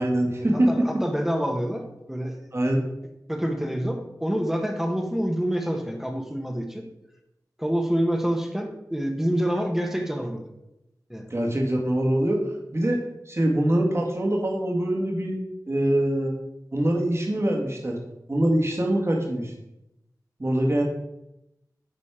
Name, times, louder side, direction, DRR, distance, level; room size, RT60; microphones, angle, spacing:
voice 1, 0.0-0.7 2.5-2.8 11.3-12.4 12.7-13.0 13.3-15.4 15.7-16.4 16.7-18.0 18.3-19.5 20.4-20.8, right 1 dB, 40° right, -1 dB, 2.0 m, -23 dB
voice 2, 0.5-2.5 3.3-6.8 7.6-10.4 11.1-11.3, equal, 5° right, 2 dB, 1.2 m, -27 dB
9.8 x 4.2 x 5.0 m, 0.88 s
wide cardioid pair, 60°, 7 cm